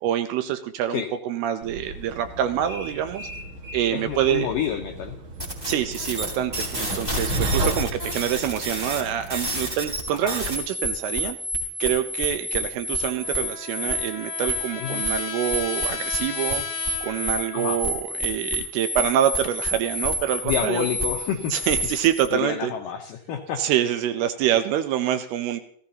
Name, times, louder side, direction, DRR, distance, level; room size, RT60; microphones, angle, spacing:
voice 1, 0.0-3.3 3.7-4.5 5.7-11.4 11.8-16.6 17.0-20.9 21.5-22.7 23.6-25.6, right 11 dB, 80° right, 10 dB, 2.4 m, -26 dB
Train, 1.6-9.9, right 2 dB, 55° right, 1.5 m, -33 dB
voice 2, 3.9-5.2 10.1-10.4 14.8-15.1 17.5-17.8 20.4-21.5 22.3-23.6, left 9 dB, 85° left, 3 dB, 1.9 m, -29 dB
sound 1, 5.4-22.3, equal, 10° right, 2.8 m, -29 dB
Trumpet, 12.9-18.0, left 9 dB, 65° left, 2.1 m, -36 dB
16.5 x 14.5 x 2.9 m, 0.65 s
omnidirectional pair, 5.0 m